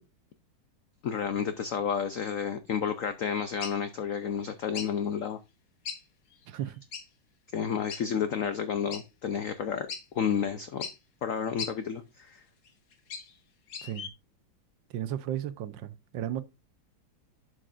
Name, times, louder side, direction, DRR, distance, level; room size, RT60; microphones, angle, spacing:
voice 1, 1.0-5.4 7.5-10.9 11.2-12.4, left 7 dB, 90° left, 0.7 m, -31 dB
sound 1, 3.6-3.8 4.7-4.9 5.9-6.0 6.3-6.4 6.9-7.1 7.9-8.0 8.9-9.0 9.5-9.6 9.9-10.0 10.8-11.0 11.6-11.7 12.7-13.3 13.7-14.1, left 6 dB, 50° left, 1.5 m, -37 dB
voice 2, 6.5-6.8 13.8-14.1 14.9-16.4, right 11 dB, 70° right, 1.3 m, -34 dB
11.5 x 6.3 x 2.5 m
omnidirectional pair, 2.2 m